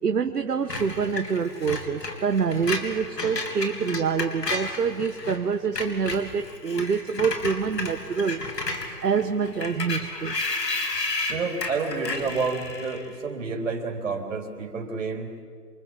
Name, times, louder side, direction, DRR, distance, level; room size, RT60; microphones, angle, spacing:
voice 1, 0.0-8.5 9.0-10.4, right 6 dB, 65° right, 6 dB, 1.3 m, -26 dB
Screech, 0.7-5.4 5.6-13.1, left 3 dB, 75° left, 3.7 m, -32 dB
voice 2, 11.3-15.3, right 4 dB, 50° right, 2 dB, 3.9 m, -29 dB
27.5 x 24.5 x 7.5 m, 2.2 s
hypercardioid pair, 160°, 49 cm